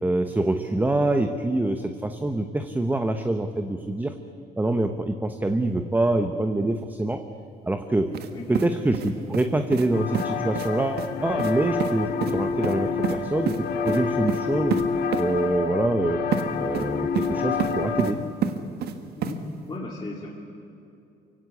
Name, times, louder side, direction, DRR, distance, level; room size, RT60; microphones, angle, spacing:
voice 1, 0.0-4.1 4.6-7.2 7.7-8.1 8.5-13.5 13.8-14.8 15.2-16.2 16.6-18.2, right 2 dB, 10° right, 7 dB, 1.0 m, -25 dB
sound 1, 8.1-8.3 8.5-9.5 9.7-9.9 10.1-10.3 10.5-10.7 11.0-11.1 11.4-11.5 11.8-11.9 12.2-12.3 12.6-13.2 13.5-13.6 13.9-14.0 14.3-14.4 14.7-14.8 15.1-15.2 16.3-16.4 16.7-17.3 17.6-18.1 18.4-18.9 19.2-19.3, right 8 dB, 70° right, 1.6 m, -28 dB
voice 2, 8.3-8.7 19.2-19.4 19.7-20.3, left 2 dB, 25° left, -3 dB, 2.7 m, -36 dB
sound 2, 9.9-18.1, left 5 dB, 65° left, 1.5 m, -28 dB
24.0 x 16.5 x 8.5 m, 2.7 s
cardioid pair, 110°, 17 cm